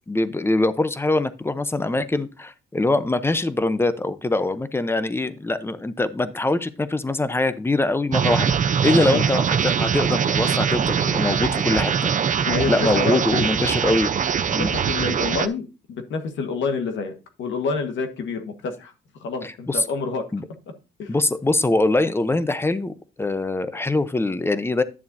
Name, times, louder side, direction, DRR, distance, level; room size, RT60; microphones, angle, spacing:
voice 1, 0.1-8.5 8.8-12.1 12.7-14.1 14.5-14.7 19.4-19.8 20.3-20.4 21.1-24.8, left 2 dB, 10° left, 13 dB, 0.7 m, -23 dB
sound 1, 8.1-15.5, right 7 dB, 40° right, 0.6 m, -22 dB
voice 2, 8.9-9.2 12.5-13.4 14.6-18.9 19.2-20.2 21.0-21.1, left 4 dB, 70° left, 7 dB, 1.5 m, -28 dB
10.5 x 7.0 x 2.7 m, 0.31 s
cardioid pair, 90°, 20 cm